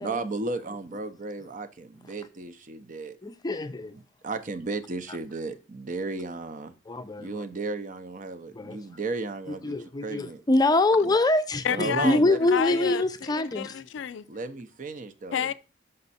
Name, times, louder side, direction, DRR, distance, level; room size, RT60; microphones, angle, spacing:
voice 1, 0.0-3.2 3.9-6.7 7.2-10.4 11.0-11.1 11.7-12.4 12.7-13.0 14.3-15.5, right 3 dB, 45° right, 0.6 m, -34 dB
voice 2, 3.2-3.9 6.9-7.3 8.5-8.8 9.6-13.8, left 2 dB, 20° left, 0.5 m, -24 dB
voice 3, 11.6-12.2 12.5-14.3 15.3-15.5, left 8 dB, 80° left, 0.4 m, -30 dB
5.6 x 5.3 x 4.1 m
head